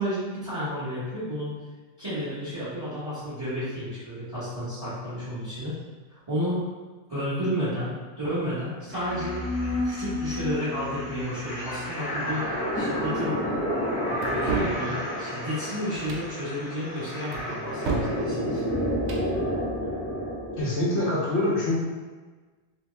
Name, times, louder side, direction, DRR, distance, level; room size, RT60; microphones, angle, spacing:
voice 1, 0.0-1.5 2.0-5.8 6.3-6.6 7.1-9.4 9.8-13.3 14.1-18.6, equal, 25° right, -12 dB, 1.1 m, -31 dB
sound 1, 8.9-20.6, left 1 dB, 15° left, 0.6 m, -30 dB
sound 2, 14.2-14.8 15.9-16.3 17.3-18.2 18.9-19.3, right 4 dB, 80° right, 0.9 m, -30 dB
voice 2, 20.6-21.8, left 1 dB, 85° left, -6 dB, 1.1 m, -25 dB
2.9 x 2.8 x 3.2 m, 1.3 s
omnidirectional pair, 1.1 m